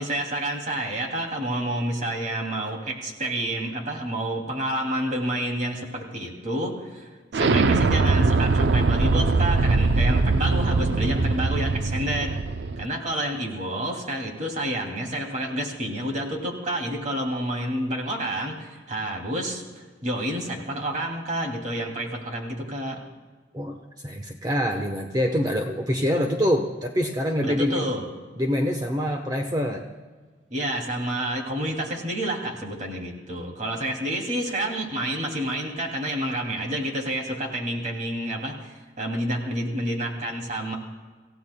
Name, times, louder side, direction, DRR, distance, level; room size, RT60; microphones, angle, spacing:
voice 1, 0.0-12.4 12.8-19.6 20.0-23.0 27.4-28.0 30.5-40.8, right 1 dB, 45° right, 1 dB, 2.6 m, -29 dB
Explosion, 7.3-12.9, right 3 dB, 70° right, 0.5 m, -21 dB
voice 2, 23.5-27.9 28.4-29.9, equal, 20° right, 3 dB, 1.0 m, -25 dB
27.5 x 15.5 x 2.2 m, 1.4 s
head